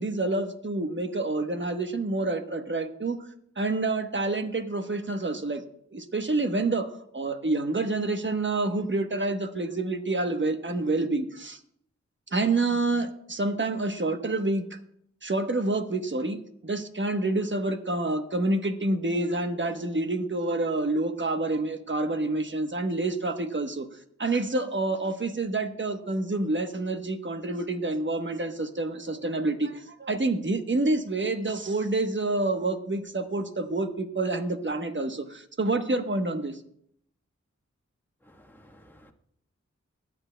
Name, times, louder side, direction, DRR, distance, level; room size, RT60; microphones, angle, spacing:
voice 1, 0.0-3.2 3.6-5.6 5.9-11.6 12.3-14.8 15.2-16.4 16.6-23.9 24.2-36.6, right 2 dB, 40° right, 7 dB, 1.1 m, -28 dB
voice 2, 38.2-39.1, equal, 5° left, 1 dB, 1.4 m, -55 dB
21.0 x 8.6 x 2.3 m, 0.69 s
cardioid pair, 45°, 29 cm